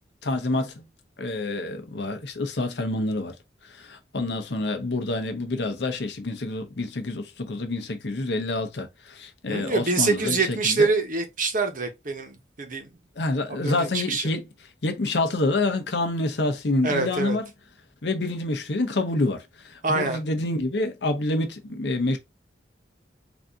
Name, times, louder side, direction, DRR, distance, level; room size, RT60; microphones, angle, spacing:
voice 1, 0.2-0.8 1.2-3.3 3.7-10.9 13.2-14.5 14.8-17.4 18.0-22.2, left 2 dB, 70° left, 0.7 m, -27 dB
voice 2, 9.5-12.9 13.6-14.3 16.8-17.4 19.8-20.2, right 3 dB, 45° right, 0.9 m, -25 dB
4.0 x 2.6 x 3.4 m
head